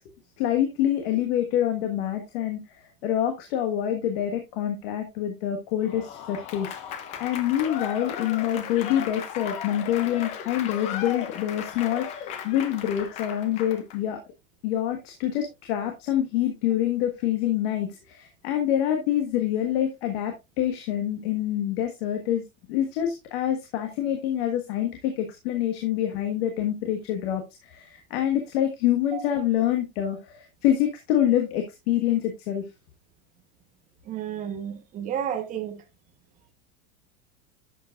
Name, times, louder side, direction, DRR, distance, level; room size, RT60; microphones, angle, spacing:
voice 1, 0.4-14.2 14.6-22.4 22.7-32.6, left 11 dB, 45° left, 1.5 m, -26 dB
Applause / Crowd, 5.8-14.0, left 9 dB, 15° left, 0.5 m, -36 dB
voice 2, 34.1-35.8, right 9 dB, 20° right, 1.1 m, -31 dB
11.0 x 7.8 x 2.4 m
supercardioid pair, 180°, 43 cm